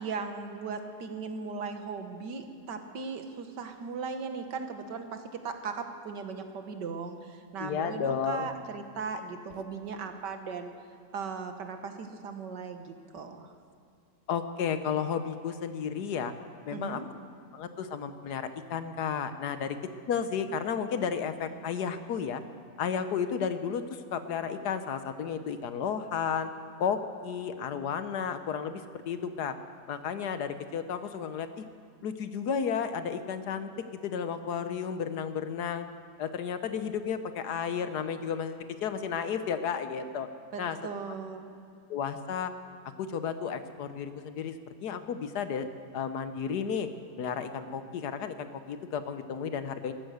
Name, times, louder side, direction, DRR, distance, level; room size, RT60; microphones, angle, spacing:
voice 1, 0.0-10.7 11.1-13.5 16.7-17.1 40.5-41.5, right 5 dB, 75° right, 6 dB, 1.9 m, -38 dB
voice 2, 7.6-8.5 14.3-16.3 16.6-17.0 17.5-19.8 20.1-22.4 22.8-26.5 26.8-29.5 29.9-31.7 32.0-33.7 34.0-35.9 36.2-40.3 40.6-40.8 41.9-42.5 43.0-44.5 44.8-45.7 45.9-46.9 47.2-49.9, left 7 dB, 70° left, 10 dB, 1.4 m, -32 dB
14.0 x 13.0 x 7.9 m, 2.4 s
omnidirectional pair, 1.9 m